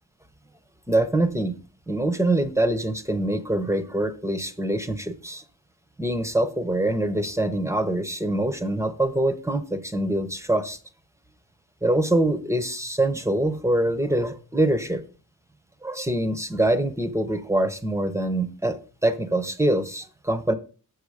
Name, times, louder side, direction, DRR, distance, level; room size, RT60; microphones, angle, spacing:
voice 1, 0.9-1.6 1.9-5.4 6.0-10.8 11.8-15.0 15.8-20.5, right 1 dB, 10° right, 9 dB, 0.8 m, -24 dB
7.7 x 6.5 x 4.9 m, 0.37 s
wide cardioid pair, 110°, 33 cm